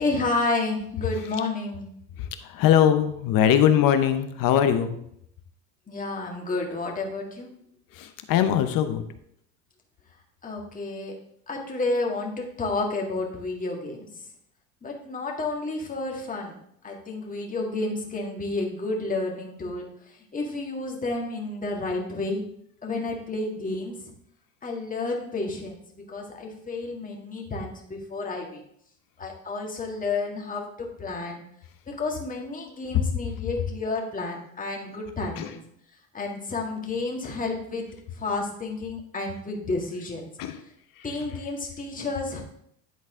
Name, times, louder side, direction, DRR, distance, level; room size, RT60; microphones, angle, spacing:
voice 1, 0.0-1.9 5.9-7.5 10.4-11.2 11.5-14.1 14.8-16.6 16.8-22.4 22.8-24.1 24.6-28.6 29.2-31.4 31.9-35.6 36.1-37.9 38.1-40.3 41.0-42.4, left 3 dB, 15° left, 0 dB, 1.8 m, -31 dB
voice 2, 2.2-5.0 7.9-9.1 35.4-35.5 40.4-40.6 41.0-41.1, left 9 dB, 45° left, 9 dB, 0.8 m, -21 dB
10.5 x 4.1 x 3.7 m, 0.72 s
supercardioid pair, 95°, 46 cm